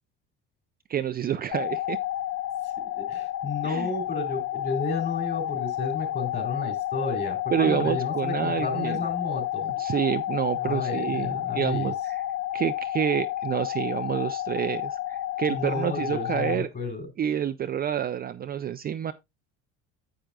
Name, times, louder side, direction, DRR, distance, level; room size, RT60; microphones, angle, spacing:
voice 1, 0.9-2.0 3.6-3.9 7.5-9.0 9.8-12.2 12.5-16.7 17.2-19.1, right 9 dB, 30° right, 0.4 m, -28 dB
sound 1, 1.5-16.5, left 13 dB, 70° left, 0.6 m, -31 dB
voice 2, 3.0-9.8 10.6-11.9 15.5-17.1, left 3 dB, 35° left, 3.5 m, -32 dB
9.9 x 7.7 x 2.3 m
cardioid pair, 110°, 31 cm